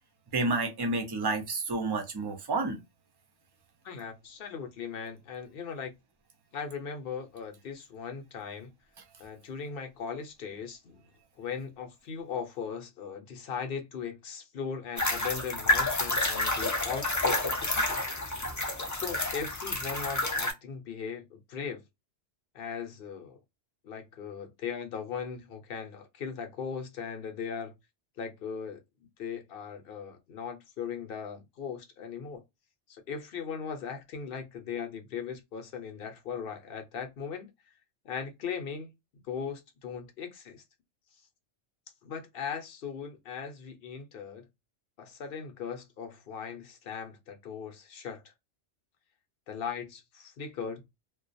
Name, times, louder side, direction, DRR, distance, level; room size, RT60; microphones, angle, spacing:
voice 1, 0.3-2.8, right 3 dB, 30° right, 0.4 m, -30 dB
voice 2, 3.8-5.9 6.5-8.7 9.2-11.0 11.4-18.0 18.9-21.8 22.5-23.4 23.8-27.7 28.2-28.8 29.2-32.4 32.9-37.5 38.0-38.9 39.3-40.6 42.0-44.4 45.0-48.2 49.5-50.8, left 6 dB, 60° left, 0.8 m, -38 dB
sound 1, 15.0-20.5, left 2 dB, 25° left, 0.4 m, -29 dB
2.3 x 2.2 x 2.5 m
omnidirectional pair, 1.2 m